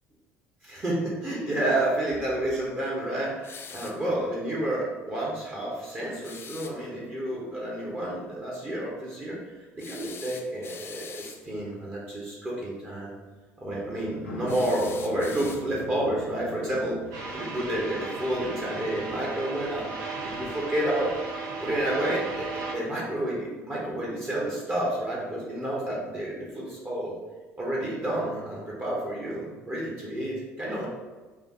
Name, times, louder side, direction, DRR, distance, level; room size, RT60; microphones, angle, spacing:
voice 1, 0.6-9.4 9.8-13.2 13.6-17.0 17.3-19.9 20.2-21.1 21.6-27.2 27.6-30.9, right 1 dB, 25° right, -5 dB, 1.2 m, -30 dB
sound 1, 3.4-4.0 6.2-6.8 9.8-11.4 14.5-15.9, left 6 dB, 30° left, 0.4 m, -44 dB
sound 2, 13.6-17.3, left 3 dB, 80° left, 0.7 m, -42 dB
sound 3, 17.1-22.7, right 3 dB, 50° right, 0.8 m, -35 dB
5.4 x 2.3 x 3.0 m, 1.3 s
figure-of-eight pair, 60°, 7 cm